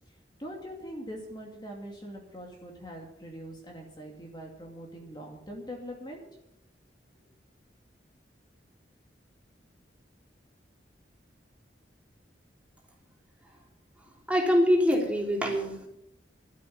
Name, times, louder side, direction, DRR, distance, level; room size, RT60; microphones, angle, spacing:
voice 1, 0.4-6.2, equal, 25° left, 0 dB, 2.4 m, -42 dB
voice 2, 14.3-15.9, equal, 10° right, -1 dB, 3.5 m, -24 dB
13.0 x 8.5 x 9.1 m, 0.83 s
head